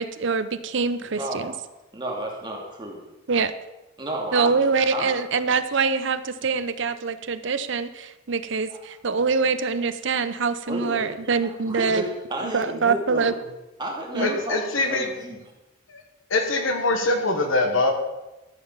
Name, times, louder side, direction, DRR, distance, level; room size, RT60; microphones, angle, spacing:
voice 1, 0.0-1.5 3.3-3.5 4.3-12.1 12.4-13.3 14.1-14.4, right 5 dB, 60° right, 11 dB, 0.6 m, -24 dB
voice 2, 1.0-1.6 1.9-3.0 4.0-4.5 4.9-5.1 8.7-8.8 10.7-11.1 11.4-13.3 13.8-15.4, right 1 dB, 20° right, -1 dB, 2.4 m, -32 dB
voice 3, 14.2-15.2 15.9-16.0 16.3-17.9, left 2 dB, 75° left, 4 dB, 1.5 m, -23 dB
13.5 x 6.0 x 7.0 m, 1.0 s
head